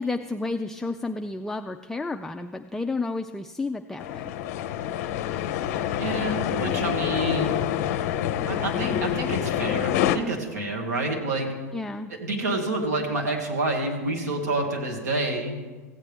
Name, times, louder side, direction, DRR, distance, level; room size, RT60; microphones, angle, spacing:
voice 1, 0.0-4.2 11.7-12.1, left 3 dB, 5° left, 5 dB, 0.3 m, -31 dB
sound 1, 4.0-10.2, left 11 dB, 60° left, 0.6 m, -27 dB
voice 2, 6.0-7.6 8.4-11.5 12.1-15.6, right 2 dB, 80° right, 1 dB, 1.9 m, -28 dB
15.5 x 8.2 x 3.5 m, 1.3 s
hypercardioid pair, 105°, 9 cm